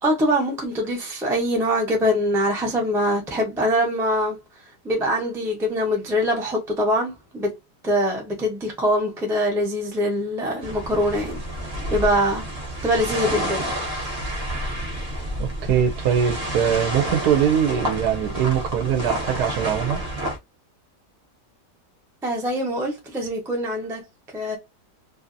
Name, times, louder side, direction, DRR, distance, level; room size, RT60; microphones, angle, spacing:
voice 1, 0.0-4.4 4.8-7.5 7.8-11.4 11.9-12.5 12.8-13.7 22.2-24.0 24.3-24.6, equal, 5° right, 0.4 m, -23 dB
sound 1, 10.6-20.4, equal, 45° right, 0.9 m, -29 dB
voice 2, 15.4-20.0, right 8 dB, 70° right, 1.0 m, -22 dB
2.7 x 2.6 x 2.5 m
omnidirectional pair, 1.8 m